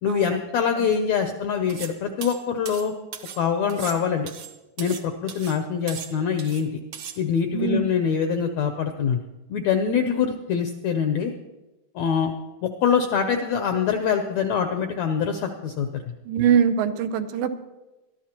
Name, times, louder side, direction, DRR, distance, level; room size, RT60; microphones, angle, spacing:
voice 1, 0.0-2.9 3.4-4.3 4.8-6.7 7.2-9.2 9.5-11.3 11.9-12.3 12.6-16.0, left 7 dB, 80° left, 6 dB, 1.6 m, -24 dB
sound 1, 1.7-3.4 3.7-5.0 5.3-5.6 5.9-6.6 6.9-7.2, right 8 dB, 65° right, 1.6 m, -38 dB
voice 2, 7.5-7.8 16.3-17.5, right 7 dB, 90° right, 9 dB, 2.5 m, -22 dB
21.5 x 13.0 x 2.9 m, 1.1 s
omnidirectional pair, 4.0 m